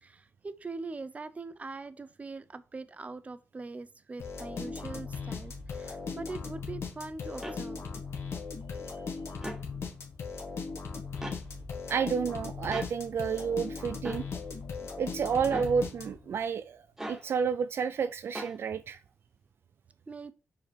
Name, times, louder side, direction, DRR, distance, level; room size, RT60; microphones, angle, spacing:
voice 1, 0.0-7.8 20.1-20.3, right 3 dB, 30° right, 0.7 m, -42 dB
sound 1, 4.2-16.4, left 5 dB, 70° left, 1.6 m, -38 dB
sound 2, 7.4-7.6 9.4-9.6 11.2-11.4 12.7-12.9 14.0-14.3 15.5-15.7 17.0-17.2 18.4-18.6, right 1 dB, 10° right, 1.2 m, -38 dB
voice 2, 11.9-14.2 15.0-19.0, right 6 dB, 65° right, 0.4 m, -30 dB
5.0 x 4.8 x 5.0 m
cardioid pair, 70°, 4 cm